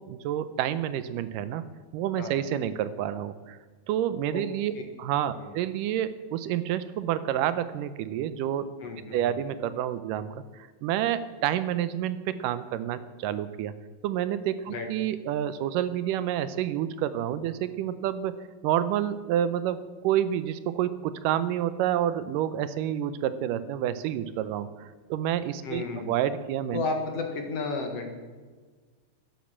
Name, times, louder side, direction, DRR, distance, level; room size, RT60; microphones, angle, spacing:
voice 1, 0.0-1.6 1.9-3.6 3.9-4.7 5.0-8.7 9.1-13.7 14.0-18.4 18.6-26.8, right 11 dB, 80° right, 14 dB, 2.2 m, -29 dB
voice 2, 8.8-9.4 14.7-14.9 25.6-26.1 26.7-28.1, left 3 dB, 55° left, 4 dB, 2.3 m, -32 dB
13.0 x 10.5 x 7.2 m, 1.4 s
omnidirectional pair, 4.0 m